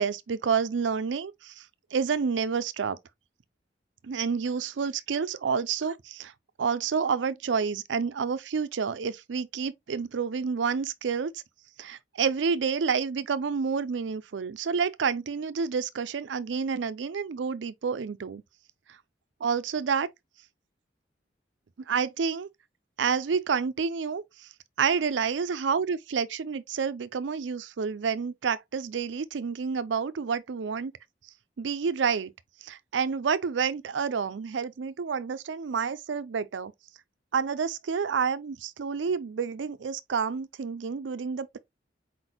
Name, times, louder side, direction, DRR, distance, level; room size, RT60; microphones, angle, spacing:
voice 1, 0.0-1.7 1.9-3.0 4.0-6.3 6.6-11.4 11.8-18.4 19.4-20.1 21.9-22.5 23.0-24.5 24.8-30.9 31.6-32.3 32.6-36.7 37.3-41.6, right 6 dB, 90° right, 0.5 m, -29 dB
4.5 x 4.0 x 2.9 m
head